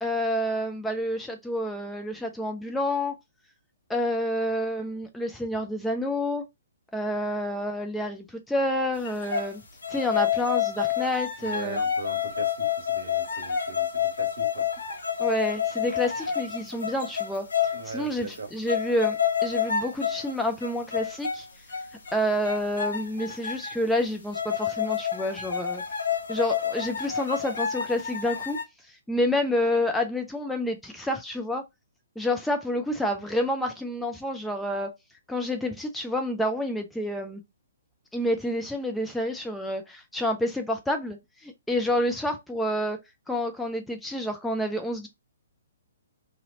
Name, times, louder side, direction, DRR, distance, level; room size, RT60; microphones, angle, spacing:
voice 1, 0.0-3.1 3.9-6.4 6.9-9.6 9.9-11.8 15.2-17.5 17.9-21.5 22.1-25.8 26.3-28.6 28.9-31.6 32.2-34.9 35.3-37.4 38.1-43.0 43.3-45.1, left 1 dB, 5° left, 0.4 m, -28 dB
sound 1, 9.0-9.5 9.8-17.9 18.3-18.4 18.7-20.3 20.6-21.4 21.7-22.1 22.4-23.8 24.3-28.6, left 8 dB, 60° left, 0.9 m, -29 dB
voice 2, 11.4-14.7 17.7-18.5, right 4 dB, 60° right, 1.4 m, -39 dB
2.8 x 2.7 x 3.7 m
figure-of-eight pair, 125°, 0 cm